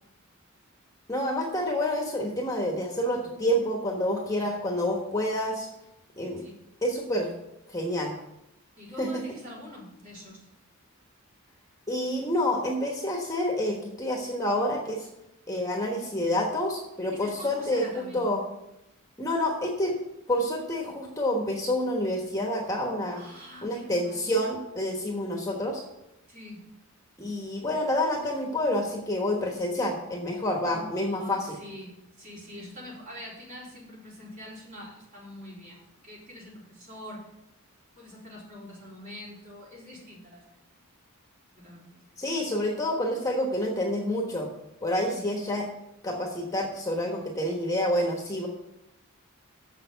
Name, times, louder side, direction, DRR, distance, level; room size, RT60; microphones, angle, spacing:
voice 1, 1.1-5.7 6.2-6.4 6.8-7.3 7.7-8.1 9.0-9.2 11.9-15.1 15.5-17.9 18.1-18.4 19.2-19.9 20.3-23.3 23.6-25.8 27.2-31.6 42.2-44.5 44.8-45.6 46.0-48.5, left 1 dB, 15° left, 0 dB, 1.2 m, -28 dB
voice 2, 8.8-10.5 17.1-18.3 23.1-24.4 26.3-26.6 30.7-37.3 38.0-40.4 41.6-42.2 45.0-45.2, left 1 dB, 40° right, -5 dB, 4.2 m, -45 dB
7.0 x 6.7 x 8.0 m, 0.86 s
head